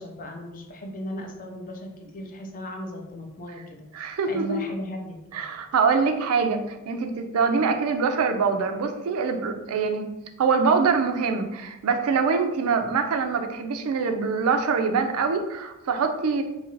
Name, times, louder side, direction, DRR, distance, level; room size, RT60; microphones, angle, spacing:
voice 1, 0.0-5.5, equal, 40° left, 2 dB, 0.5 m, -37 dB
voice 2, 3.9-4.6 5.3-10.1 10.4-16.4, right 5 dB, 70° right, 6 dB, 0.4 m, -24 dB
2.7 x 2.5 x 3.0 m, 0.94 s
head